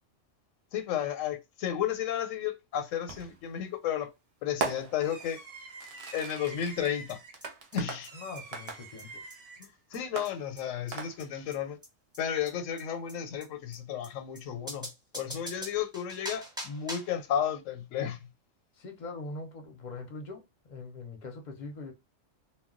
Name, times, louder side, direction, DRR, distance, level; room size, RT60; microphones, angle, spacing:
voice 1, 0.7-4.1 4.4-5.4 6.1-7.2 7.7-8.1 9.6-11.8 12.2-14.9 15.1-18.3, left 9 dB, 85° left, 1.0 m, -33 dB
Fireworks, 3.1-3.5 4.6-9.6 10.2-11.5, right 4 dB, 65° right, 0.3 m, -40 dB
sound 1, 7.1-7.2 7.4-7.5 7.7-7.8 8.0-8.1 8.3-8.4 8.7-8.8 9.0-9.1 9.3-9.4 9.6-9.7 9.9-10.0 10.2-10.3 10.6-10.7 10.9-11.0 11.2-11.3 11.5-11.6 11.8-11.9 12.1-12.2 12.4-12.5 12.8-12.9 13.1-13.2 13.4-13.5 13.7-13.8 14.0-14.1 14.3-14.4 14.7-17.2, equal, 5° right, 0.7 m, -42 dB
voice 2, 8.1-9.2 18.8-21.9, left 3 dB, 50° left, 0.6 m, -42 dB
2.2 x 2.2 x 3.6 m
omnidirectional pair, 1.3 m